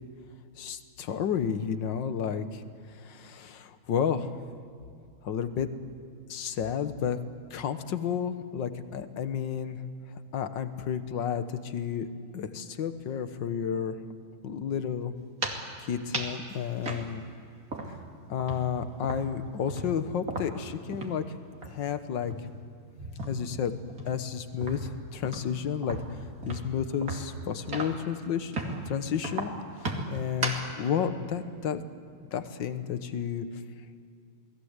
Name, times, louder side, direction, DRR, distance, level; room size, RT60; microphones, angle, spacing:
voice 1, 0.6-2.6 3.1-4.3 5.2-5.7 6.3-7.2 7.5-9.8 10.3-12.1 12.3-14.0 14.4-15.1 15.8-17.2 17.9-18.0 18.3-21.2 21.7-22.3 23.3-23.7 24.1-26.0 26.5-28.5 28.9-29.5 30.1-31.9 32.3-33.5, left 8 dB, 60° left, 10 dB, 1.8 m, -31 dB
sound 1, 15.2-15.7 16.1-16.4 16.8-18.1 18.4-21.3 21.5-21.8 22.2-23.5 23.9-28.1 28.5-28.9 29.2-30.7, right 2 dB, 40° right, 2.9 m, -36 dB
29.0 x 20.0 x 8.2 m, 2.5 s
omnidirectional pair, 2.3 m